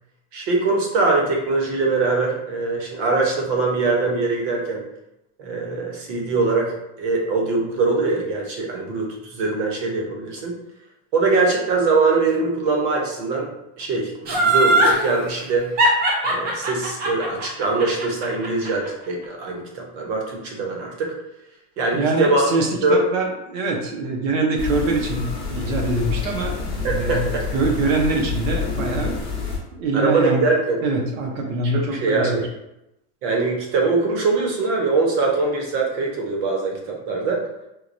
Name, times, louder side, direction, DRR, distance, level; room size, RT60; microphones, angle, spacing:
voice 1, 0.3-4.8 5.4-6.7 7.0-10.6 11.1-13.5 13.8-15.7 16.2-21.1 21.8-22.5 22.8-23.0 26.8-27.5 27.9-28.0 29.9-30.8 31.7-32.5 33.2-37.4, right 3 dB, 55° right, 0 dB, 0.9 m, -22 dB
Laughter, 14.3-15.0 15.8-18.9 19.2-19.3, right 1 dB, 25° right, 0.5 m, -19 dB
voice 2, 21.9-29.2 29.7-30.4 30.8-32.4, right 3 dB, 85° right, 1 dB, 0.8 m, -24 dB
sound 1, 24.6-29.6, left 5 dB, 10° left, 0.8 m, -28 dB
4.6 x 2.1 x 2.6 m, 0.89 s
cardioid pair, 175°, 39 cm